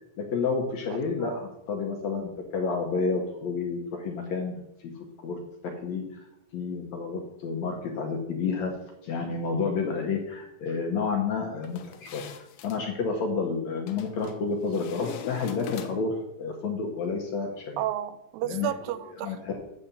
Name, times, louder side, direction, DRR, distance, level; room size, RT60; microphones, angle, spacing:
voice 1, 0.2-4.6 5.2-6.0 6.5-8.7 9.0-12.2 12.6-17.8 18.4-18.7 19.2-19.6, left 4 dB, 70° left, 2 dB, 1.8 m, -30 dB
voice 2, 0.9-1.4 17.8-19.4, right 12 dB, 85° right, 13 dB, 2.3 m, -32 dB
sound 1, 11.6-12.8 13.9-14.4 14.7-16.2, left 8 dB, 90° left, 2.6 m, -42 dB
8.5 x 4.3 x 6.7 m, 0.84 s
omnidirectional pair, 4.1 m